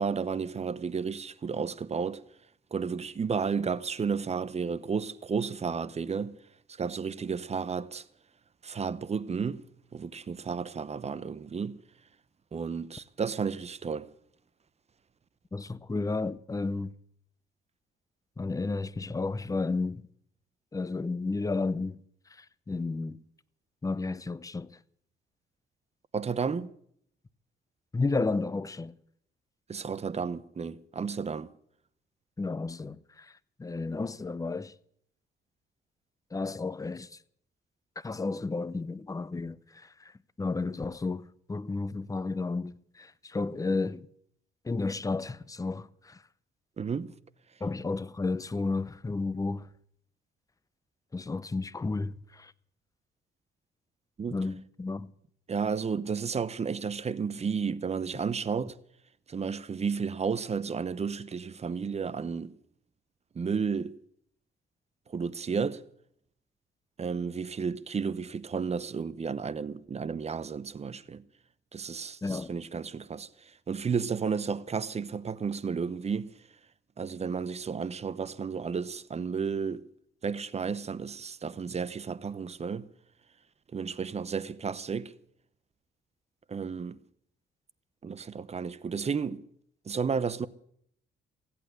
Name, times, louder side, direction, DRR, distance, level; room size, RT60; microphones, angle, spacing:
voice 1, 0.0-2.2 2.7-6.4 6.8-8.0 8.6-11.8 12.5-14.1 26.1-26.7 29.7-31.5 46.8-47.2 54.2-54.4 55.5-58.8 59.3-62.6 63.3-64.0 65.1-65.8 67.0-71.2 71.7-73.3 73.7-76.4 77.0-79.9 80.2-82.9 83.7-85.1 86.5-87.0 88.0-89.4 89.9-90.5, right 6 dB, 35° right, 0.8 m, -32 dB
voice 2, 15.5-16.9 18.4-20.0 20.7-22.0 22.7-23.2 23.8-24.8 27.9-28.9 32.4-33.3 33.6-34.7 36.3-37.1 38.0-39.9 40.4-44.1 44.6-46.2 47.6-49.6 51.1-52.5 54.3-55.1 72.2-72.5, left 3 dB, 15° left, 0.6 m, -32 dB
16.5 x 8.7 x 9.4 m
cardioid pair, 90°, 20 cm